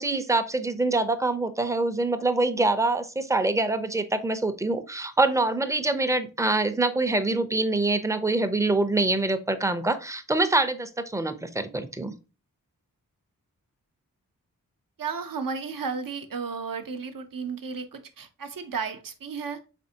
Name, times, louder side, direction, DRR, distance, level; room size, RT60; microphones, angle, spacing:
voice 1, 0.0-12.1, right 2 dB, 10° right, 9 dB, 0.5 m, -25 dB
voice 2, 15.0-19.6, right 5 dB, 65° right, 7 dB, 0.7 m, -33 dB
4.3 x 3.4 x 2.7 m, 0.32 s
cardioid pair, 40°, 36 cm